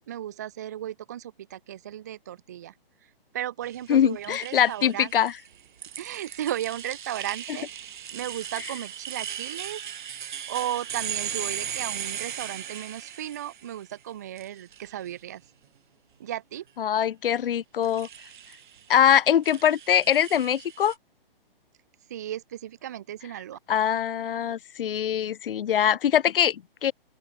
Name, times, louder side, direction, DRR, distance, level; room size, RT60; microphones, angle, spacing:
voice 1, 0.1-2.7 3.3-5.1 6.0-7.7 8.1-9.8 10.5-15.4 16.2-16.6 22.1-23.6, right 12 dB, 20° right, 0.5 m, -35 dB
sound 1, 3.6-13.9 14.4-15.1 17.8-18.9 19.4-20.9, right 9 dB, 55° right, 1.1 m, -37 dB
voice 2, 3.9-5.3 16.8-18.1 18.9-20.9 23.7-26.9, left 9 dB, 65° left, 0.7 m, -23 dB
open air
hypercardioid pair, 160°, 30 cm